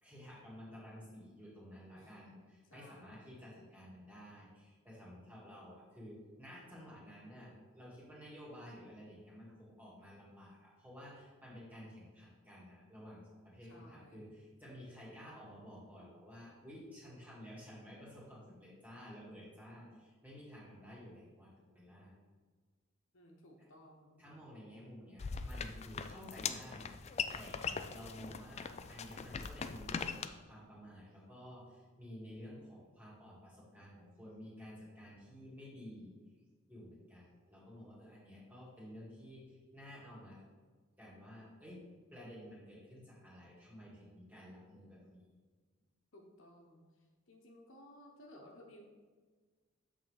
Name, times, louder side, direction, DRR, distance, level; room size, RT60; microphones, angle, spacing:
voice 1, 0.0-22.1 24.2-36.1 36.7-40.5 41.0-41.8 42.1-45.2, equal, 10° right, -7 dB, 2.3 m, -52 dB
voice 2, 2.7-3.4 13.7-14.4 23.1-24.3 46.1-46.8 47.3-48.9, left 1 dB, 70° left, 1 dB, 1.2 m, -58 dB
sound 1, 25.2-30.3, left 6 dB, 30° left, 0.3 m, -41 dB
8.2 x 3.8 x 6.5 m, 1.4 s
head